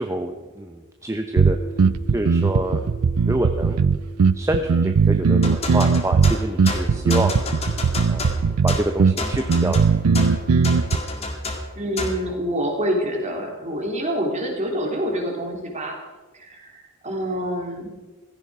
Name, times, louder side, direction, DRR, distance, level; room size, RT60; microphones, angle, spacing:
voice 1, 0.0-1.6 2.1-3.8 4.3-7.3 8.1-9.9, right 1 dB, 15° right, 5 dB, 0.7 m, -27 dB
sound 1, 1.4-11.0, right 5 dB, 90° right, 0.5 m, -19 dB
sound 2, 1.5-10.3, right 3 dB, 5° left, 4.0 m, -44 dB
sound 3, 5.4-12.3, left 2 dB, 30° left, 2.1 m, -29 dB
voice 2, 11.7-16.0 16.3-17.9, equal, 30° right, 1 dB, 3.3 m, -26 dB
16.5 x 14.0 x 4.9 m, 1.2 s
head